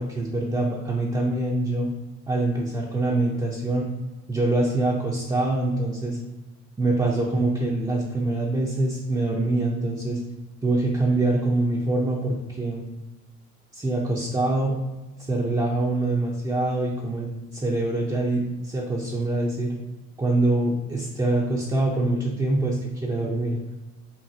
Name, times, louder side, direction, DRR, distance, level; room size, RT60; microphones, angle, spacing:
voice 1, 0.0-1.9 2.3-3.9 4.3-6.2 6.8-10.2 10.6-12.8 13.7-14.8 15.3-19.8 20.2-23.6, right 2 dB, 15° right, -3 dB, 0.6 m, -24 dB
5.7 x 2.6 x 2.7 m, 1.1 s
cardioid pair, 90°, 30 cm